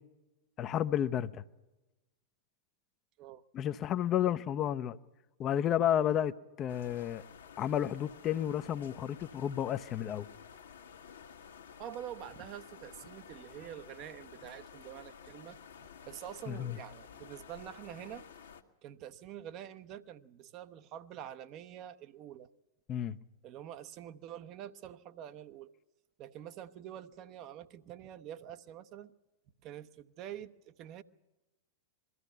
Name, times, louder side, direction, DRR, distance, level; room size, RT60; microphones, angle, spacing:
voice 1, 0.6-1.4 3.5-5.0 5.4-7.2 7.6-10.3 16.5-16.8 22.9-23.2, left 10 dB, 30° left, 0.7 m, -31 dB
sound 1, 6.7-18.6, left 7 dB, 65° left, 1.4 m, -52 dB
voice 2, 11.8-15.6 16.0-18.3 18.8-22.5 23.4-25.7 26.2-29.1 29.6-31.0, right 11 dB, 40° right, 0.8 m, -46 dB
22.0 x 14.0 x 9.2 m
figure-of-eight pair, 90°, 0 cm